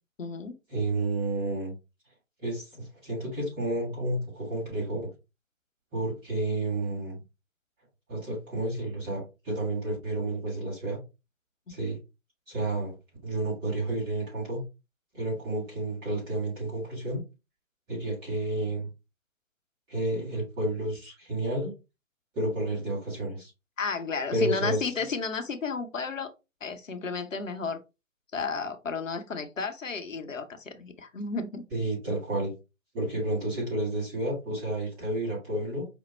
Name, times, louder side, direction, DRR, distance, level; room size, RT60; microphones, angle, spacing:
voice 1, 0.2-0.6 11.7-11.8 23.8-26.3 26.6-27.8 28.3-31.6, left 4 dB, 70° left, 0.9 m, -33 dB
voice 2, 0.7-1.8 2.4-5.1 5.9-7.2 8.1-11.0 11.7-12.0 12.5-13.0 13.2-14.6 15.1-17.2 17.9-18.9 19.9-21.7 22.3-23.5 24.3-24.8 31.7-32.5 32.9-35.9, right 1 dB, 10° right, 0.8 m, -31 dB
5.2 x 2.1 x 3.3 m
figure-of-eight pair, 140°, 40 cm